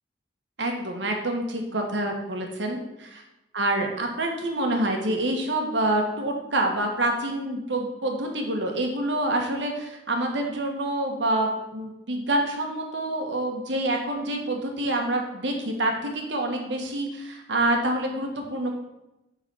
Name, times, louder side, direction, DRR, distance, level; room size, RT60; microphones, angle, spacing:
voice 1, 0.6-3.2 3.5-18.7, right 1 dB, 80° right, 2 dB, 1.4 m, -27 dB
8.3 x 4.1 x 5.6 m, 0.94 s
head